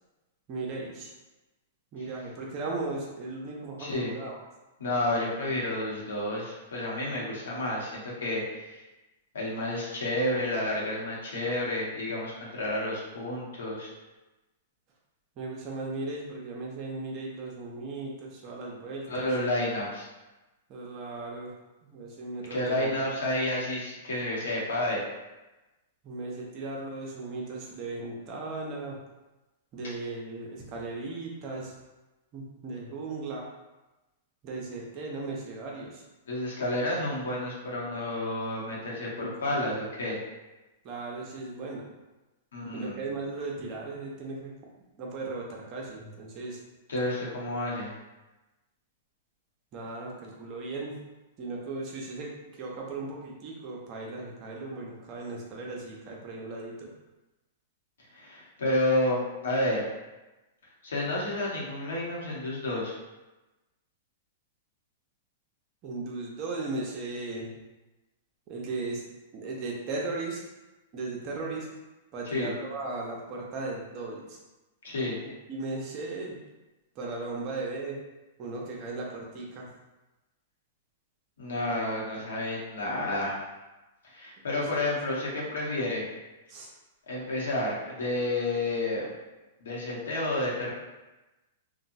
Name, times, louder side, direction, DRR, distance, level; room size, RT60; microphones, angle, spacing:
voice 1, 0.5-1.1 1.9-4.4 15.4-19.3 20.7-21.5 21.8-22.9 26.0-29.0 29.7-31.7 32.3-33.5 34.4-36.0 39.0-39.7 40.8-41.8 42.7-44.5 45.0-46.6 49.7-51.0 51.4-56.9 65.8-67.5 68.5-69.0 69.3-70.4 70.9-71.7 72.1-74.4 75.5-76.4 77.0-78.0 78.4-79.7 84.7-84.8 86.5-86.7, right 3 dB, 40° right, -2 dB, 0.7 m, -37 dB
voice 2, 3.8-4.1 4.8-8.8 9.3-13.9 19.1-20.1 22.5-25.0 36.3-40.2 42.5-43.1 46.9-47.9 58.1-59.8 60.8-62.9 72.2-72.5 74.8-75.2 81.4-83.4 84.0-86.1 87.1-89.1 89.6-90.7, left 1 dB, 80° left, -4 dB, 0.9 m, -30 dB
2.9 x 2.2 x 2.6 m, 1.1 s
hypercardioid pair, 120°, 0 cm